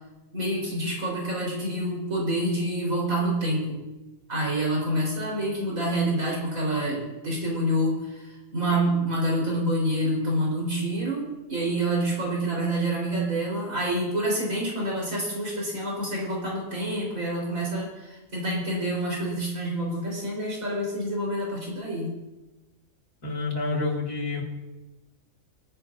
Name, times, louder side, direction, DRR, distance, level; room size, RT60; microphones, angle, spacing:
voice 1, 0.3-3.8 4.3-22.1, right 1 dB, 70° right, -4 dB, 4.8 m, -27 dB
voice 2, 23.2-24.4, left 3 dB, 70° left, -1 dB, 2.9 m, -28 dB
24.0 x 9.9 x 2.7 m, 1.0 s
omnidirectional pair, 1.5 m